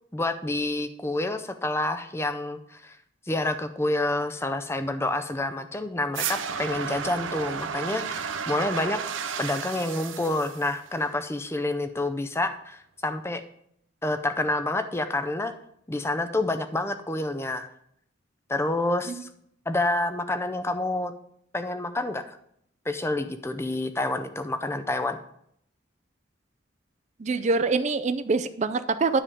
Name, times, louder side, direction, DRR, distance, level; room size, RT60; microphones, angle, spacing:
voice 1, 0.1-3.0 3.3-9.0 9.4-13.4 14.0-15.5 15.9-17.7 18.5-19.3 19.7-21.1 21.5-22.3 22.9-25.2, left 2 dB, 15° left, 8 dB, 0.5 m, -28 dB
sound 1, 6.1-11.2, right 6 dB, 80° right, 0.7 m, -33 dB
voice 2, 27.2-29.2, right 3 dB, 35° right, 11 dB, 0.4 m, -25 dB
9.9 x 3.7 x 6.7 m, 0.71 s
head